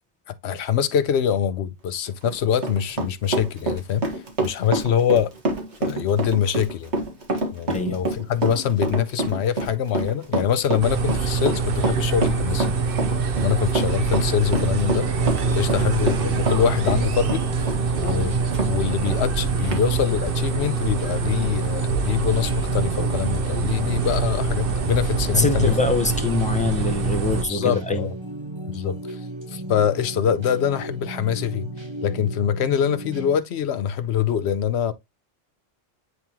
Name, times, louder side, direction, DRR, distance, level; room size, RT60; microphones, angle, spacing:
voice 1, 0.4-4.0 4.4-5.3 5.8-6.9 7.5-12.7 13.3-15.3 15.5-18.3 18.6-25.8 27.5-28.2 28.7-29.2 29.5-31.7 32.0-34.9, left 8 dB, 70° left, 1.0 m, -24 dB
Run, 2.1-18.7 19.1-19.2 19.7-19.8, right 2 dB, 80° right, 1.9 m, -27 dB
sound 1, 10.8-27.4, right 5 dB, 55° right, 1.0 m, -24 dB
sound 2, 14.5-33.4, right 2 dB, 25° right, 0.9 m, -35 dB
voice 2, 25.3-28.1, left 2 dB, 5° left, 0.9 m, -24 dB
9.4 x 3.5 x 2.9 m
omnidirectional pair, 1.1 m